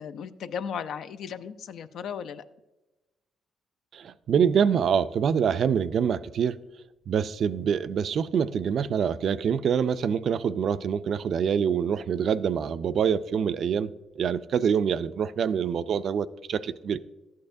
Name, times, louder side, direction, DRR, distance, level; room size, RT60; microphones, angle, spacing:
voice 1, 0.0-2.4, left 7 dB, 70° left, 0.5 m, -36 dB
voice 2, 3.9-6.6 7.1-17.0, right 7 dB, 60° right, 0.4 m, -25 dB
12.5 x 8.7 x 2.6 m
cardioid pair, 90°, 0 cm